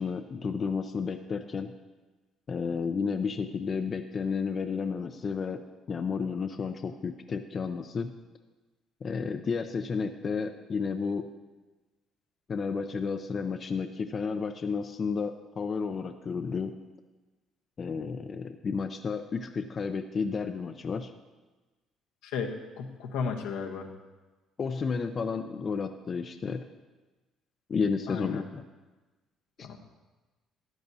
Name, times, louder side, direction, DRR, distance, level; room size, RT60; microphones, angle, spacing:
voice 1, 0.0-1.7 2.5-5.6 5.9-8.1 9.0-11.3 12.5-16.7 17.8-21.1 24.6-26.6 27.7-28.6 29.6-29.7, left 5 dB, 45° left, 7 dB, 0.6 m, -32 dB
voice 2, 22.8-23.9 28.1-28.5 29.6-29.8, left 5 dB, 85° left, 2 dB, 1.1 m, -34 dB
14.0 x 10.5 x 2.8 m, 1.2 s
supercardioid pair, 75°, 0 cm